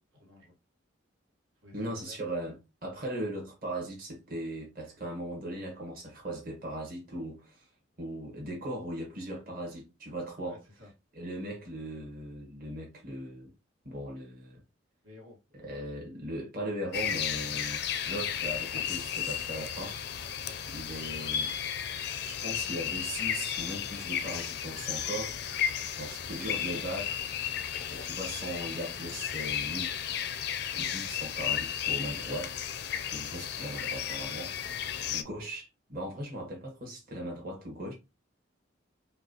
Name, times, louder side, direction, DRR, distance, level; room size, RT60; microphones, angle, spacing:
voice 1, 0.1-0.6 1.6-2.2 10.5-10.9 15.0-15.4 20.4-20.6 25.7-26.2 34.7-35.1, left 2 dB, 85° right, 1.4 m, -54 dB
voice 2, 1.7-7.6 8.0-10.6 11.1-13.5 13.8-14.6 15.5-20.0 20.3-20.4 20.7-21.5 22.2-25.7 26.0-27.2 27.9-29.9 30.7-32.5 33.1-34.5 35.1-37.9, right 1 dB, 45° right, 1.3 m, -38 dB
sound 1, 16.9-35.2, left 9 dB, 55° left, 0.4 m, -34 dB
5.7 x 2.3 x 2.8 m
head